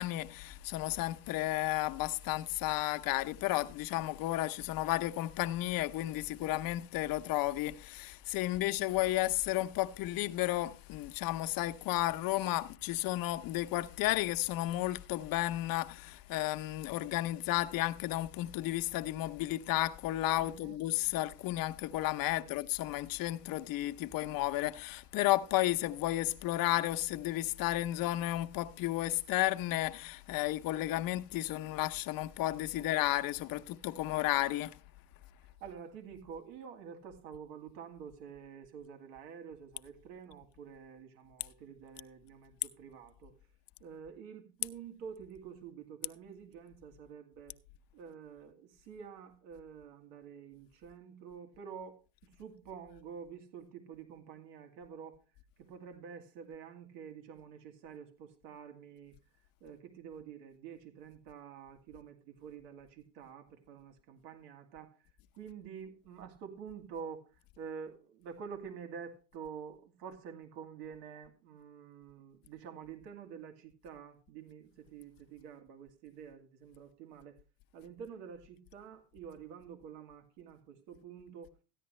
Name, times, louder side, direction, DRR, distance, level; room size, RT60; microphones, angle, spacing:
voice 1, 0.0-34.8, left 16 dB, 45° left, 0.8 m, -33 dB
voice 2, 20.4-20.8 22.3-22.5 32.8-33.4 35.6-43.3 43.8-47.6 47.9-55.2 55.6-59.2 59.6-65.0 65.3-77.4 77.7-81.5, right 7 dB, 75° right, 2.5 m, -48 dB
14.5 x 10.0 x 3.2 m
supercardioid pair, 115°, 46 cm